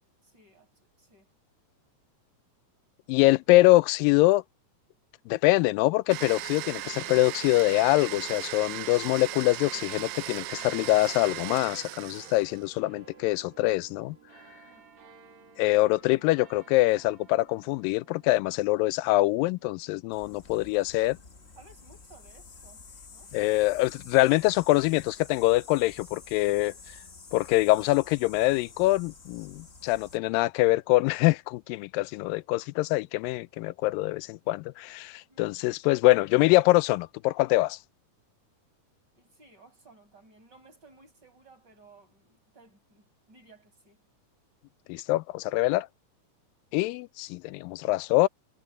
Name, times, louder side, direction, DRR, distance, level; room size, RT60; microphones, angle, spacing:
voice 1, 0.2-0.7 1.0-1.3 14.7-14.9 21.6-22.9 23.1-23.3 35.3-35.5 39.2-44.0, right 3 dB, 30° right, 6.8 m, -57 dB
voice 2, 3.1-4.4 5.3-14.2 15.6-21.2 23.3-26.7 27.3-37.8 44.9-45.9 46.7-48.3, left 19 dB, 90° left, 2.3 m, -24 dB
Domestic sounds home sounds, 6.1-12.7, right 15 dB, 75° right, 2.1 m, -37 dB
sound 1, 10.5-23.4 24.1-24.2, right 5 dB, 50° right, 2.3 m, -56 dB
sound 2, 20.1-30.2, left 4 dB, 45° left, 0.8 m, -50 dB
omnidirectional pair, 3.9 m